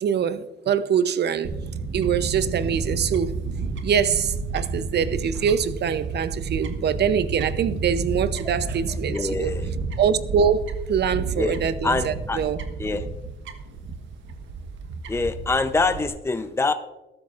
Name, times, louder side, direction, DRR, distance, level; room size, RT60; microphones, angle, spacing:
voice 1, 0.0-1.5 1.9-3.4 3.8-9.5 10.0-12.6, right 7 dB, 55° right, 0.8 m, -24 dB
Fowl / Bird, 1.4-16.1, right 4 dB, 70° right, 1.4 m, -31 dB
voice 2, 9.1-9.7 11.1-11.5 11.8-12.4 12.8-13.1 15.1-16.7, left 3 dB, 15° left, 0.7 m, -25 dB
14.5 x 12.5 x 2.5 m
cardioid pair, 90°, 20 cm